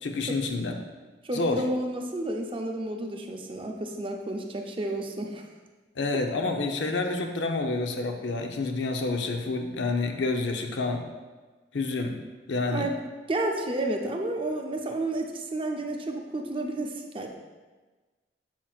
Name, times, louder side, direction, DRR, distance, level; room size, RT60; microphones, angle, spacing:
voice 1, 0.0-0.8 1.3-1.7 6.0-11.1 11.7-12.2 12.5-12.9, left 3 dB, 85° left, 4 dB, 0.6 m, -28 dB
voice 2, 1.2-5.4 12.7-12.9 13.3-17.3, right 1 dB, 30° right, 2 dB, 0.5 m, -31 dB
7.3 x 5.8 x 2.4 m, 1.3 s
head